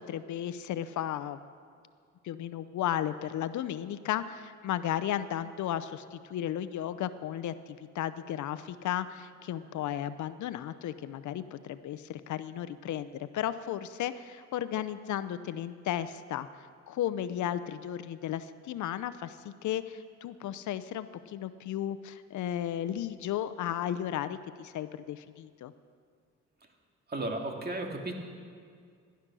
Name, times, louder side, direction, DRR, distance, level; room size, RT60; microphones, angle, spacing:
voice 1, 0.0-1.4 2.2-16.5 16.9-25.7, left 11 dB, 75° left, 13 dB, 0.7 m, -34 dB
voice 2, 27.1-28.2, right 2 dB, 35° right, 2 dB, 2.3 m, -34 dB
18.0 x 11.5 x 6.2 m, 2.1 s
cardioid pair, 90°, 30 cm